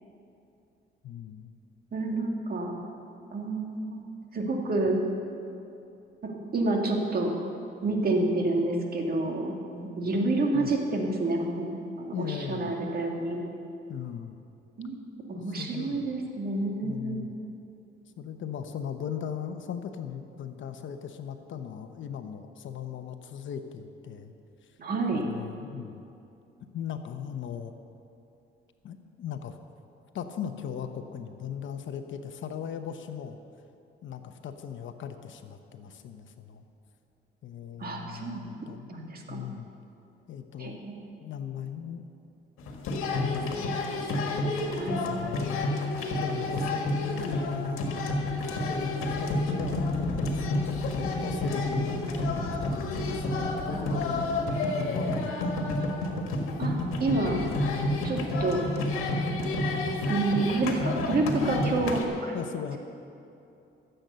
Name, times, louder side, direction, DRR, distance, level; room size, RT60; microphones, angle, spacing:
voice 1, 1.0-1.5 10.5-10.7 12.1-12.7 13.9-14.4 15.6-16.2 16.8-17.3 18.2-24.3 25.1-26.0 26.7-27.7 28.8-29.6 30.1-33.4 34.0-36.6 37.4-38.9 39.3-39.7 40.3-40.8 41.2-42.1 43.1-43.6 44.6-45.7 46.2-48.0 48.6-54.2 54.7-55.9 57.2-57.7 62.3-62.8, left 8 dB, 65° left, 7 dB, 0.9 m, -38 dB
voice 2, 1.9-2.7 3.3-4.1 4.3-5.0 6.2-7.4 7.8-11.7 12.0-13.4 14.8-17.2 24.8-25.3 37.8-38.5 38.9-39.4 40.6-41.0 44.8-45.1 53.7-54.5 56.6-57.4 58.0-58.6 60.1-62.4, right 2 dB, 45° right, 1 dB, 2.1 m, -29 dB
sound 1, 42.6-62.0, left 2 dB, 80° left, 1.6 m, -29 dB
14.5 x 7.9 x 6.8 m, 2.7 s
cardioid pair, 90°, 21 cm